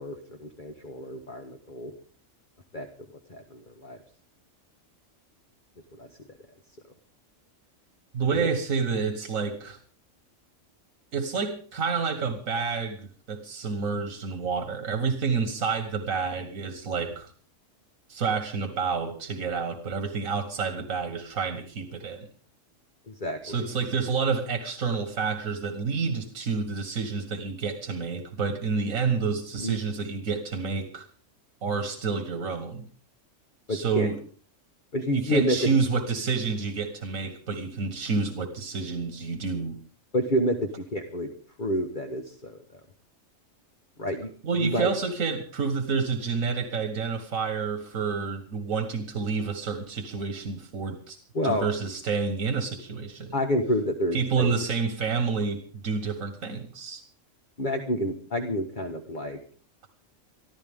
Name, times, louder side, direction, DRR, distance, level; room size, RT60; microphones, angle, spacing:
voice 1, 0.0-1.9 2.7-2.9 3.3-4.0 5.9-6.1 8.3-8.4 23.1-23.7 29.6-29.8 33.7-34.1 34.9-35.6 40.1-41.3 41.6-42.6 44.0-44.9 51.3-51.7 53.3-54.5 57.6-59.4, equal, 40° left, 5 dB, 1.4 m, -29 dB
voice 2, 8.1-9.8 11.1-17.3 18.1-22.3 23.4-31.1 31.6-32.9 33.7-34.2 35.1-39.8 44.4-51.2 51.4-53.4 54.1-57.0, right 5 dB, 85° right, 7 dB, 1.9 m, -29 dB
23.5 x 14.5 x 3.7 m, 0.43 s
omnidirectional pair, 1.4 m